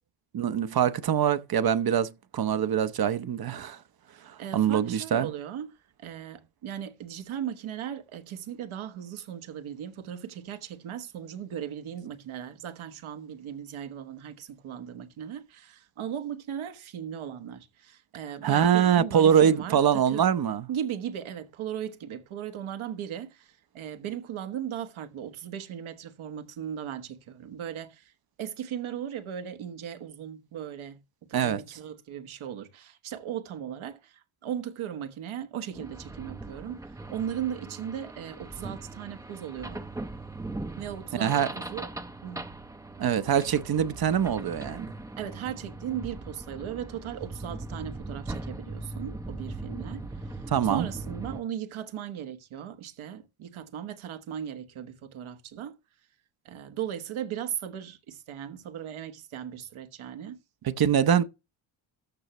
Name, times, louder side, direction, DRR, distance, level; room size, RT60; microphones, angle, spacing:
voice 1, 0.3-3.8 4.2-5.3 18.4-20.7 31.3-31.6 41.2-41.5 43.0-44.9 50.5-50.9 60.6-61.2, right 8 dB, 45° right, 0.8 m, -24 dB
voice 2, 4.4-5.7 6.0-20.3 20.7-28.1 28.4-39.8 40.8-41.9 42.2-42.4 45.2-55.7 56.4-60.4, right 9 dB, 75° right, 1.4 m, -37 dB
sound 1, 35.8-51.4, right 2 dB, 5° right, 0.6 m, -40 dB
13.5 x 5.6 x 3.0 m
cardioid pair, 100°, 49 cm